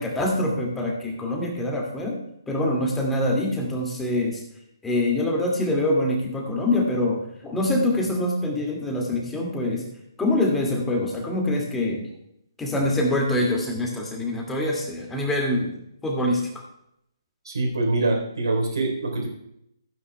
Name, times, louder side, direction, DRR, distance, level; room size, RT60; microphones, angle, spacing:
voice 1, 0.0-2.2 2.5-4.4 4.8-9.9 10.2-12.1 12.6-15.7 16.0-16.4, left 1 dB, 10° left, -1 dB, 2.1 m, -24 dB
voice 2, 17.5-19.3, right 2 dB, 70° right, 1 dB, 3.6 m, -24 dB
15.5 x 9.6 x 2.2 m, 0.77 s
figure-of-eight pair, 140°, 2 cm